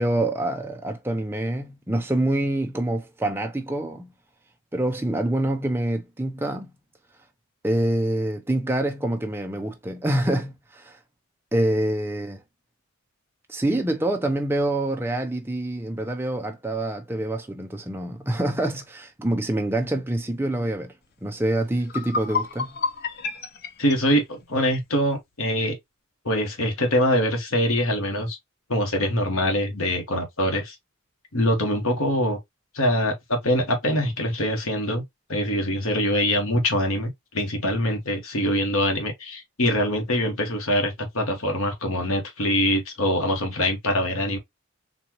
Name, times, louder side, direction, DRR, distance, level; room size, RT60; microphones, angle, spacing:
voice 1, 0.0-4.1 4.7-6.7 7.6-11.0 11.5-12.4 13.5-20.9 21.2-22.8, right 1 dB, 10° right, 0.6 m, -26 dB
sound 1, 21.4-21.5 21.8-24.9, left 4 dB, 45° left, 0.5 m, -30 dB
voice 2, 23.8-25.8 26.2-28.4 28.7-30.7 31.3-32.4 32.7-35.0 35.3-44.4, equal, 75° left, 1.3 m, -24 dB
4.2 x 2.5 x 2.9 m
head